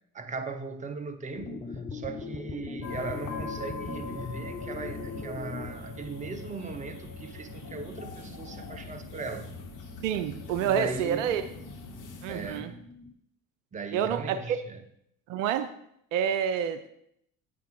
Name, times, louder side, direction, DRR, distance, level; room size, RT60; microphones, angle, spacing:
voice 1, 0.1-9.6 10.6-11.3 12.3-12.9 13.7-14.8, right 4 dB, 15° right, 0.8 m, -38 dB
sound 1, 1.3-6.7 7.2-7.3 7.5-7.6 7.8-8.6 8.9-13.1, left 4 dB, 15° left, 0.7 m, -42 dB
sound 2, 2.8-12.6, left 3 dB, 45° left, 1.5 m, -42 dB
voice 2, 10.0-11.4 12.2-12.7 13.9-14.6 15.3-15.7 16.1-16.9, right 9 dB, 60° right, 0.7 m, -28 dB
10.0 x 8.1 x 2.4 m
figure-of-eight pair, 60°, 43 cm